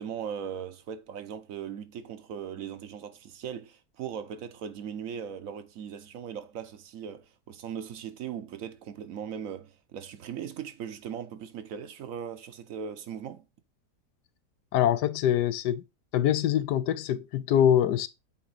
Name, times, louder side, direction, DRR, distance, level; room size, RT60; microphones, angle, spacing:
voice 1, 0.0-13.4, right 8 dB, 60° right, 1.0 m, -39 dB
voice 2, 14.7-15.8 16.1-18.1, left 10 dB, 85° left, 1.2 m, -24 dB
8.0 x 3.7 x 4.0 m
omnidirectional pair, 1.8 m